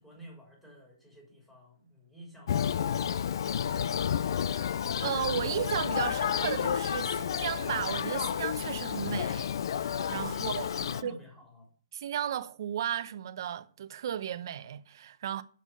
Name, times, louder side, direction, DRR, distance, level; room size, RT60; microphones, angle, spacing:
voice 1, 0.0-3.6 10.1-11.7, left 1 dB, 10° left, 3.5 m, -50 dB
Thunder, 2.5-11.0, left 8 dB, 65° left, 0.4 m, -31 dB
voice 2, 4.3-10.7 11.0-11.2 11.9-15.4, right 10 dB, 55° right, 0.8 m, -35 dB
8.5 x 6.9 x 5.5 m
hypercardioid pair, 150°, 2 cm